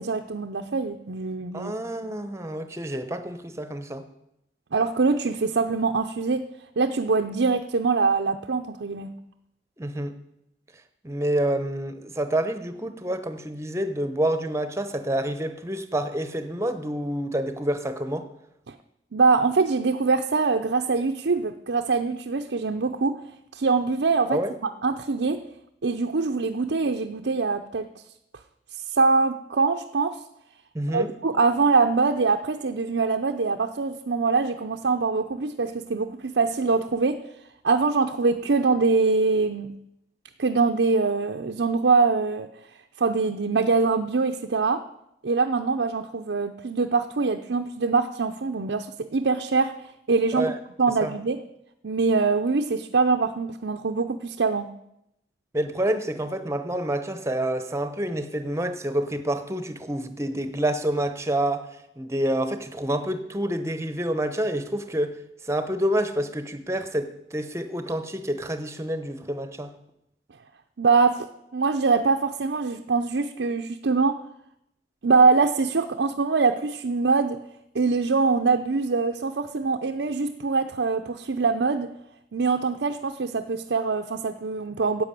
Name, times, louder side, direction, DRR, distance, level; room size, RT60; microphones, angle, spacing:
voice 1, 0.0-1.7 4.7-6.5 6.8-9.1 18.7-18.8 19.1-23.2 23.5-24.4 24.8-25.4 25.8-27.9 28.7-30.2 30.9-37.2 37.6-39.7 40.4-42.5 43.0-44.8 45.2-49.7 50.1-50.5 50.8-51.4 51.8-54.7 70.8-71.3 71.5-74.2 75.0-77.4 77.7-81.9 82.3-85.0, right 4 dB, 85° right, 0.6 m, -23 dB
voice 2, 1.5-4.1 9.8-10.1 11.0-18.3 24.3-24.5 30.7-31.1 50.3-50.6 51.0-51.1 55.5-65.2 65.4-69.7, right 1 dB, 15° right, 0.9 m, -28 dB
11.0 x 8.2 x 8.3 m
head